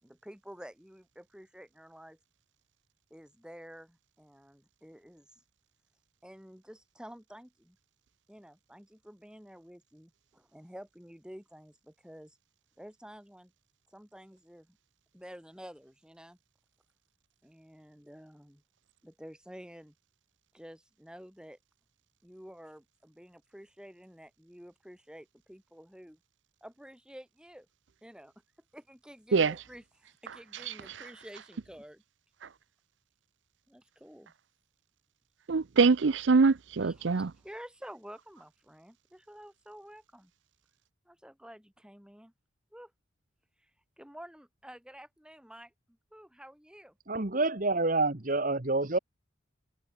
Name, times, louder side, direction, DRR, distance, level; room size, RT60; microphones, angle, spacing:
voice 1, 0.0-2.2 3.1-5.4 6.2-7.8 8.3-12.4 12.8-13.5 13.9-14.8 15.1-16.4 17.4-18.6 19.0-19.9 20.5-21.6 22.2-26.2 26.6-27.7 28.0-28.3 28.7-32.0 33.7-34.3 36.8-40.3 41.0-42.3 42.7-42.9 43.6-43.7 44.0-47.0, equal, 5° right, 4.5 m, -50 dB
voice 2, 35.5-37.3, right 4 dB, 65° right, 0.5 m, -24 dB
voice 3, 47.1-49.0, right 2 dB, 40° right, 1.7 m, -28 dB
head